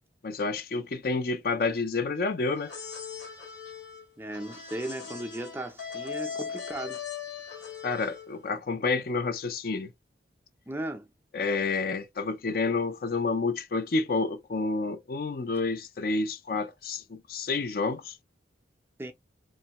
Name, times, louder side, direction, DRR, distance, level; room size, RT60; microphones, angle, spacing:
voice 1, 0.2-2.7 7.8-9.9 11.3-18.2, left 3 dB, 50° left, 0.4 m, -29 dB
sound 1, 2.5-8.4, left 6 dB, 75° left, 1.9 m, -39 dB
voice 2, 4.2-7.0 7.4-7.5 10.7-11.1 19.0-19.1, right 1 dB, 10° right, 0.4 m, -36 dB
3.1 x 2.1 x 2.8 m
head